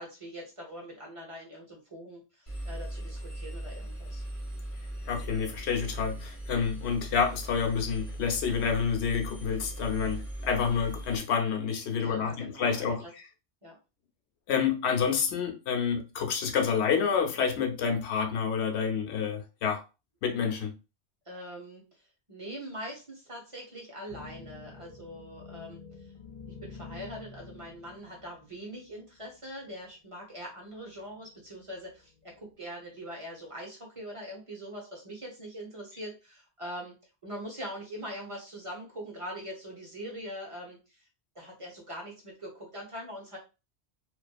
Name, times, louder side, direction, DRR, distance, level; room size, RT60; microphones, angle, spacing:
voice 1, 0.0-4.2 12.0-13.1 13.6-13.8 21.3-21.8 22.3-25.8 26.6-37.0 37.2-41.0 41.3-43.4, equal, 35° right, 0.7 m, -42 dB
Engine, 2.5-11.2, right 1 dB, 30° left, 1.0 m, -39 dB
voice 2, 5.1-13.0 14.5-19.8 20.2-20.7, left 6 dB, 80° left, 0.9 m, -28 dB
sound 1, 24.1-28.9 29.6-29.7 30.9-31.4 32.1-32.5, left 4 dB, 60° left, 0.4 m, -47 dB
2.5 x 2.3 x 2.3 m
omnidirectional pair, 1.1 m